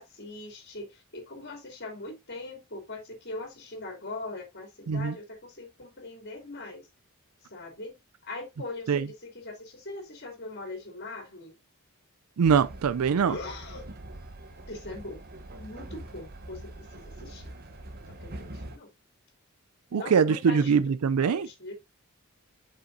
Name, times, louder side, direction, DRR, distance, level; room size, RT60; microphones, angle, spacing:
voice 1, 0.0-6.9 7.5-8.0 8.2-11.5 13.2-13.9 14.7-15.2 15.5-17.5 18.2-18.9 19.9-20.7 21.2-21.7, left 2 dB, 50° left, 2.8 m, -41 dB
Train, 12.4-18.8, right 1 dB, 45° right, 1.0 m, -43 dB
voice 2, 12.4-13.4 19.9-21.5, right 6 dB, 85° right, 0.4 m, -23 dB
7.7 x 5.7 x 2.7 m
head